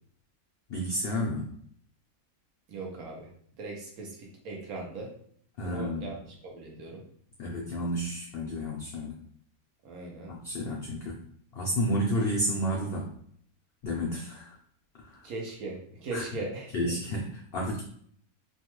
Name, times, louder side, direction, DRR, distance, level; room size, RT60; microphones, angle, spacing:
voice 1, 0.7-1.5 5.6-6.1 7.4-9.2 10.3-11.2 11.5-13.1 13.8-14.6 15.0-15.2 16.1-16.3 16.7-17.8, equal, 75° left, -1 dB, 0.5 m, -31 dB
voice 2, 2.7-3.3 3.6-5.1 5.6-7.0 9.8-10.3 15.2-16.9, right 2 dB, 75° right, -1 dB, 1.3 m, -39 dB
3.1 x 2.3 x 2.9 m, 0.63 s
omnidirectional pair, 1.6 m